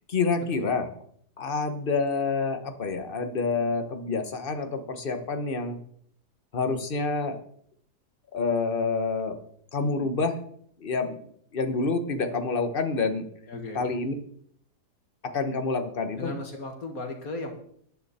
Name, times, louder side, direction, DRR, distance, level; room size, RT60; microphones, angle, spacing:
voice 1, 0.1-0.9 1.4-5.8 6.5-7.4 8.3-9.4 9.7-10.4 10.8-11.3 11.5-13.3 13.7-14.1 15.3-16.3, left 4 dB, 35° left, 8 dB, 1.3 m, -27 dB
voice 2, 13.5-13.8 16.1-17.5, left 2 dB, 60° left, 4 dB, 2.3 m, -36 dB
13.5 x 10.5 x 4.3 m, 0.64 s
omnidirectional pair, 1.8 m